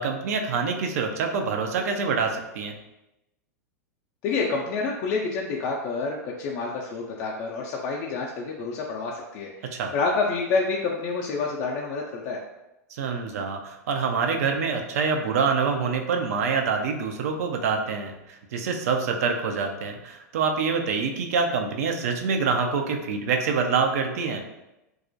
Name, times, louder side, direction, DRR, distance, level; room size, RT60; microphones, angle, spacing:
voice 1, 0.0-2.7 9.7-9.9 12.9-24.4, right 5 dB, 65° right, 4 dB, 0.4 m, -26 dB
voice 2, 4.2-12.4, left 4 dB, 45° left, -2 dB, 0.3 m, -28 dB
2.3 x 2.0 x 2.6 m, 0.94 s
hypercardioid pair, 100°, 9 cm